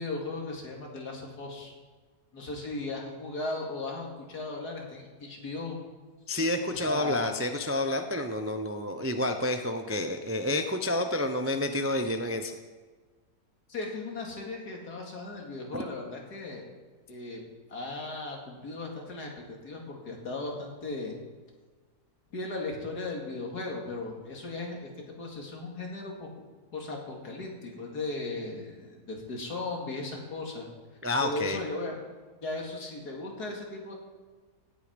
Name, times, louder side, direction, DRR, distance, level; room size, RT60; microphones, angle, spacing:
voice 1, 0.0-1.7 2.3-5.8 6.7-7.3 13.7-16.6 17.1-17.4 17.7-21.2 22.3-26.3 26.7-30.7 31.2-32.0 32.4-33.9, left 2 dB, 80° left, 0 dB, 2.8 m, -37 dB
voice 2, 6.3-12.5 15.7-15.8 31.0-31.6, left 1 dB, 20° right, 6 dB, 0.3 m, -29 dB
17.5 x 8.5 x 5.2 m, 1.4 s
omnidirectional pair, 1.7 m